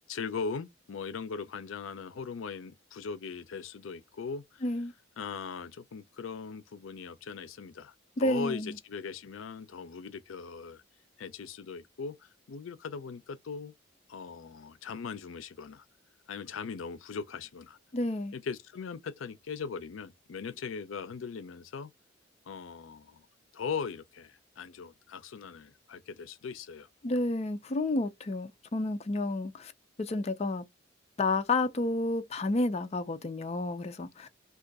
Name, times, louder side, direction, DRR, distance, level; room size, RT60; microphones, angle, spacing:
voice 1, 0.1-4.6 5.2-10.8 11.2-13.7 14.1-15.8 16.3-17.8 18.3-21.9 22.5-23.3 23.5-26.9, left 5 dB, 85° left, 0.5 m, -39 dB
voice 2, 4.6-4.9 8.2-8.8 17.9-18.3 27.0-29.7 30.0-30.6 31.2-34.3, left 2 dB, 35° left, 0.4 m, -30 dB
2.6 x 2.4 x 3.8 m
head